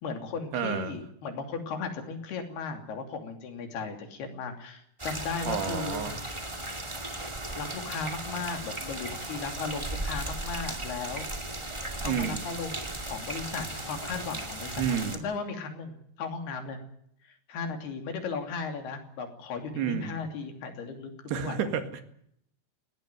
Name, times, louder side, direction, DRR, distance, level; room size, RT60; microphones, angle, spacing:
voice 1, 0.0-6.2 7.6-11.3 12.0-16.8 17.2-21.7, left 5 dB, 80° left, 5 dB, 4.9 m, -36 dB
voice 2, 0.5-1.0 5.5-6.1 12.0-12.4 14.8-15.2 19.8-20.1 21.3-22.0, right 8 dB, 85° right, 8 dB, 4.0 m, -30 dB
sound 1, 5.0-15.2, right 1 dB, 15° right, 1.2 m, -36 dB
20.0 x 18.0 x 9.3 m, 0.72 s
omnidirectional pair, 4.5 m